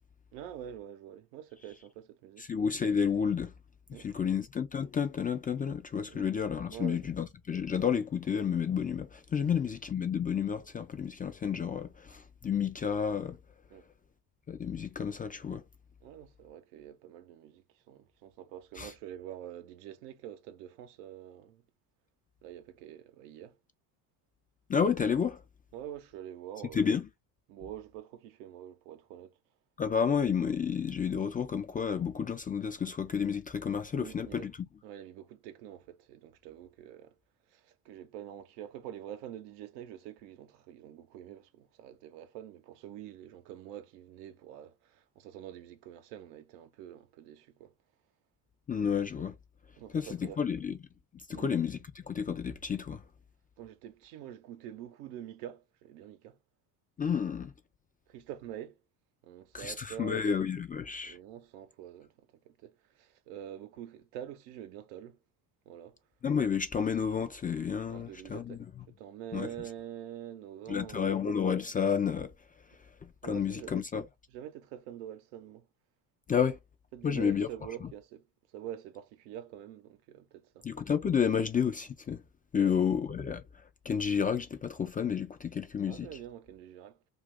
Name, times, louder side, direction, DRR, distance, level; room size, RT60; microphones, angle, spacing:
voice 1, 0.3-2.5 3.9-4.4 6.1-6.3 6.7-7.1 9.4-9.5 13.7-13.9 16.0-21.6 22.4-23.6 25.7-27.0 27.5-29.4 33.9-34.5 34.8-37.1 37.5-47.7 49.8-50.4 51.3-51.5 53.6-56.4 58.1-58.8 59.2-60.2 61.0-65.2 65.7-66.0 67.9-71.2 73.2-75.7 76.9-78.2 78.5-80.7 82.5-82.8 85.9-87.1, right 11 dB, 80° right, 0.8 m, -46 dB
voice 2, 2.4-3.5 3.9-13.4 14.5-15.6 18.8-18.9 24.7-25.4 26.7-27.1 29.8-34.6 48.7-49.3 49.9-50.8 51.3-53.0 57.0-57.5 59.5-61.2 66.2-68.8 69.3-69.5 70.7-72.3 73.0-74.0 76.3-76.6 77.0-77.5 77.8-77.9 80.6-82.2 82.5-86.1, left 7 dB, 20° left, 0.3 m, -31 dB
2.5 x 2.5 x 3.4 m
hypercardioid pair, 75°, 47 cm